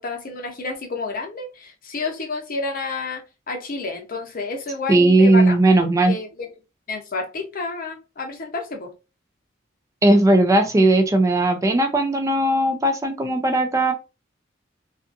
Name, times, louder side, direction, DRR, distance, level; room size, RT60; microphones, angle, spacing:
voice 1, 0.0-5.6 6.1-6.5 6.9-8.9, left 3 dB, 45° left, 0.7 m, -30 dB
voice 2, 4.9-6.1 10.0-13.9, right 2 dB, 15° right, 0.4 m, -17 dB
2.5 x 2.5 x 2.5 m
head